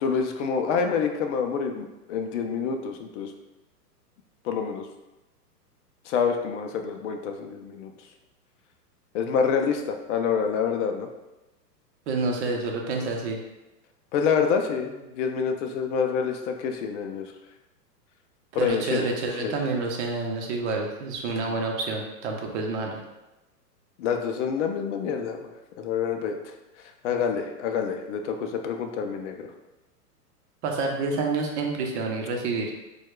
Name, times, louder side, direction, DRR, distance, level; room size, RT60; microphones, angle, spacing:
voice 1, 0.0-3.3 4.4-4.9 6.1-7.9 9.1-11.1 14.1-17.3 18.5-19.1 19.4-19.6 21.4-21.5 24.0-25.5 25.8-26.5 27.0-29.5, left 6 dB, 50° left, 4 dB, 0.5 m, -27 dB
voice 2, 12.1-13.4 18.5-23.0 30.6-32.7, right 3 dB, 45° right, 1 dB, 0.7 m, -28 dB
4.4 x 2.3 x 2.2 m, 1.0 s
hypercardioid pair, 130°, 49 cm